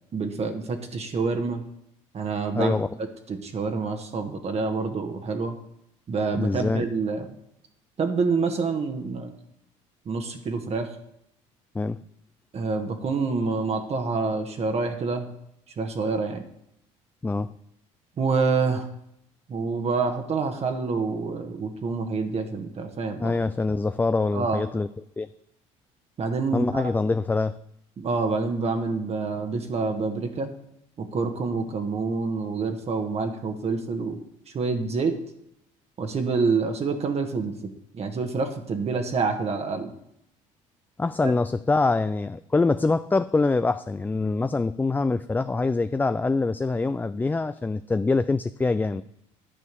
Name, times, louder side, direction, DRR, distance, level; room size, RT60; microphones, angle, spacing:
voice 1, 0.1-1.6 2.1-5.6 6.1-7.3 8.0-9.3 10.1-10.9 12.5-15.3 15.8-16.4 18.2-18.9 19.5-23.3 24.3-24.6 26.2-26.9 28.0-30.5 31.0-34.2 34.5-35.2 36.0-37.5 37.9-39.9 41.2-41.3, right 4 dB, 40° right, 5 dB, 1.3 m, -27 dB
voice 2, 2.5-2.9 6.3-6.9 11.7-12.0 17.2-17.5 23.2-24.9 25.2-25.3 26.5-27.6 41.0-49.0, left 3 dB, 10° left, 12 dB, 0.3 m, -24 dB
10.0 x 4.4 x 6.9 m, 0.77 s
hypercardioid pair, 70°, 16 cm